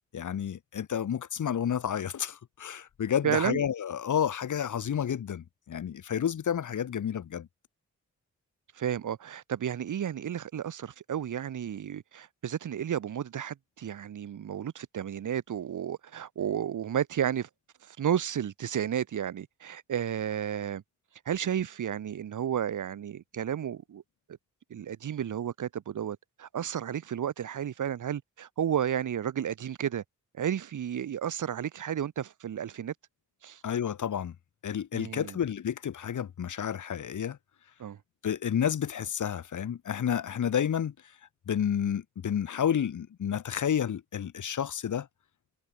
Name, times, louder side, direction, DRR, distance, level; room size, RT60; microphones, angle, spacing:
voice 1, 0.1-7.5 33.6-34.3 34.6-37.4 38.2-40.9 41.5-45.1, left 8 dB, 75° left, 2.6 m, -30 dB
voice 2, 3.2-3.6 8.8-17.5 18.0-20.8 21.3-24.0 24.7-30.0 30.4-32.9 33.4-33.6 34.9-35.4 37.8-38.0, right 9 dB, 80° right, 1.8 m, -32 dB
cardioid pair, 85°, 30 cm